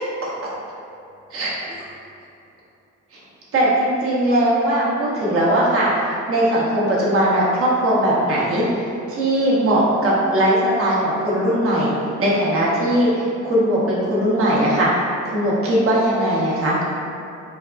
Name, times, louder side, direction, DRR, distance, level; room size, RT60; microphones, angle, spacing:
voice 1, 3.5-5.9 6.3-8.6 9.1-11.9 12.2-14.9 15.2-16.9, right 1 dB, 45° right, -7 dB, 1.1 m, -19 dB
4.5 x 2.4 x 2.2 m, 2.6 s
cardioid pair, 90°, 30 cm